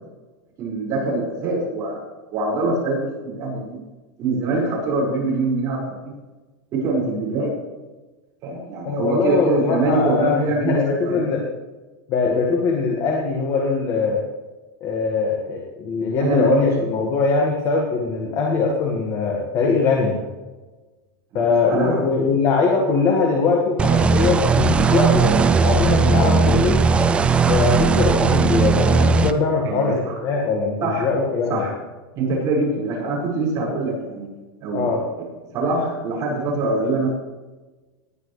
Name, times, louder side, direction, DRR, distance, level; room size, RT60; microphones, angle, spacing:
voice 1, 0.6-2.0 2.3-3.8 4.2-6.2 6.7-7.6 8.4-10.8 11.1-11.3 16.2-16.7 21.3-22.0 29.6-30.2 30.8-31.1 31.5-31.7 32.1-34.3 34.6-34.9 35.5-37.1, right 2 dB, 25° right, -4 dB, 5.2 m, -24 dB
voice 2, 8.8-11.4 12.1-14.2 14.8-20.3 21.3-25.4 25.6-26.8 27.5-31.6 34.7-35.0, left 4 dB, 30° left, 0 dB, 1.7 m, -21 dB
sound 1, 23.8-29.3, right 4 dB, 10° right, 0.3 m, -17 dB
19.5 x 10.5 x 3.3 m, 1.2 s
supercardioid pair, 175°, 13 cm